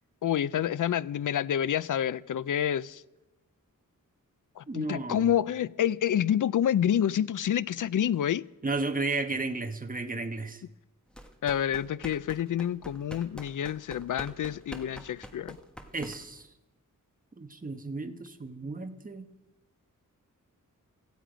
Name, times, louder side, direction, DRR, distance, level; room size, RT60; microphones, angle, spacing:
voice 1, 0.2-3.0 4.6-8.4 11.4-15.6, left 10 dB, 65° left, 0.5 m, -28 dB
voice 2, 4.7-5.3 8.6-10.6 15.9-16.5 17.4-19.3, right 3 dB, 25° right, 1.2 m, -33 dB
sound 1, 11.1-16.5, equal, 5° left, 1.3 m, -46 dB
16.5 x 15.0 x 5.1 m
wide cardioid pair, 115°, 33 cm